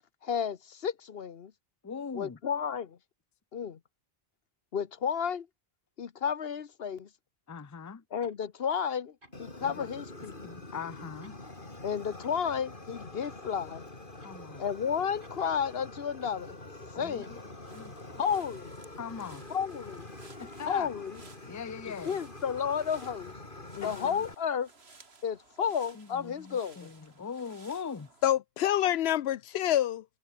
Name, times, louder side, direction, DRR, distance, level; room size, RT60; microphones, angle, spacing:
voice 1, 0.2-1.5 2.1-3.0 3.5-3.8 4.7-5.5 6.0-7.1 8.1-10.4 11.8-13.8 14.6-16.6 17.0-17.4 18.2-18.7 19.5-20.1 20.6-21.2 22.0-23.3 23.8-24.7 25.2-26.9, left 7 dB, 70° left, 1.2 m, -32 dB
voice 2, 1.8-2.4 7.5-8.0 9.6-9.9 10.4-11.4 14.2-14.6 16.9-17.4 17.7-18.2 19.0-19.5 20.4-20.9 21.4-22.2 23.8-23.9 25.9-28.1, left 6 dB, 20° left, 0.6 m, -41 dB
sound 1, 8.2-8.4 9.2-9.5 10.2-10.4 11.2-11.4 12.2-12.4 13.2-13.4 14.2-14.4 15.2-15.4 16.2-16.4 17.2-17.4 18.2-18.4 19.2-19.4, right 1 dB, 55° right, 7.1 m, -59 dB
Fire, 9.3-24.3, left 2 dB, 55° left, 3.9 m, -46 dB
sound 2, 17.7-28.3, right 3 dB, 90° right, 2.8 m, -57 dB
voice 3, 23.7-24.1 28.2-30.0, left 12 dB, 85° left, 0.9 m, -27 dB
omnidirectional pair, 1.0 m